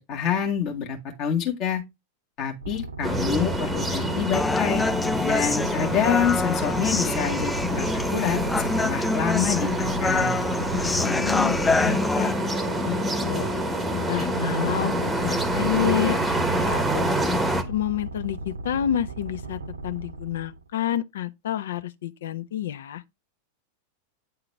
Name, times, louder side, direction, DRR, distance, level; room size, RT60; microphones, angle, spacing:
voice 1, 0.1-1.8 2.4-4.8 5.2-10.4, left 8 dB, 40° left, 1.8 m, -27 dB
sound 1, 2.6-20.7, right 2 dB, 70° right, 0.6 m, -36 dB
sound 2, 3.0-17.6, equal, 10° right, 1.0 m, -27 dB
Human voice, 4.3-12.3, left 3 dB, 10° left, 0.3 m, -27 dB
voice 2, 11.0-12.3 12.8-13.5 14.1-17.1 17.7-23.0, left 11 dB, 60° left, 0.5 m, -29 dB
9.3 x 3.8 x 3.3 m
figure-of-eight pair, 90°, 0 cm